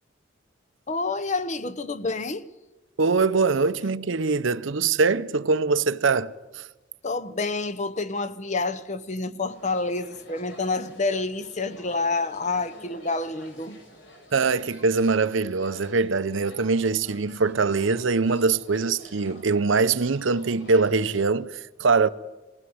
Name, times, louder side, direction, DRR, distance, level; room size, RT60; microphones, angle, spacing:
voice 1, 0.9-2.5 7.0-13.8, left 3 dB, 35° left, 0.8 m, -28 dB
voice 2, 3.0-6.7 14.3-22.1, right 4 dB, 70° right, 0.7 m, -23 dB
sound 1, 9.5-21.3, left 1 dB, 60° left, 4.2 m, -50 dB
20.5 x 16.0 x 7.9 m
head